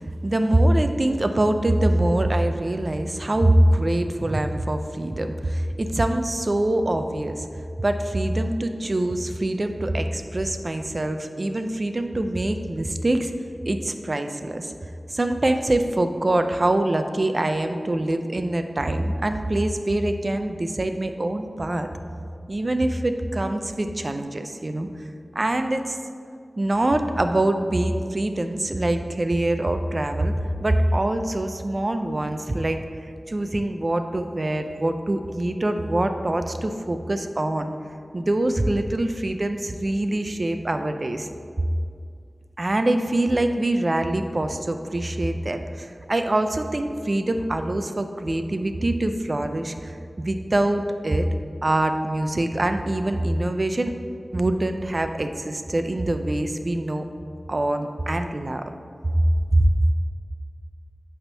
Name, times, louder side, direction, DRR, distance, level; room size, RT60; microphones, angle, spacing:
voice 1, 0.2-7.5 7.8-13.3 13.7-14.7 15.1-21.9 22.5-24.9 25.3-26.0 26.6-30.3 30.6-32.8 33.3-37.7 38.1-41.3 42.6-51.3 51.6-53.9 54.3-57.0 57.5-58.7 59.1-59.2 59.5-59.7, right 1 dB, 50° right, 7 dB, 0.5 m, -24 dB
8.5 x 3.5 x 5.5 m, 2.3 s
wide cardioid pair, 45°, 0 cm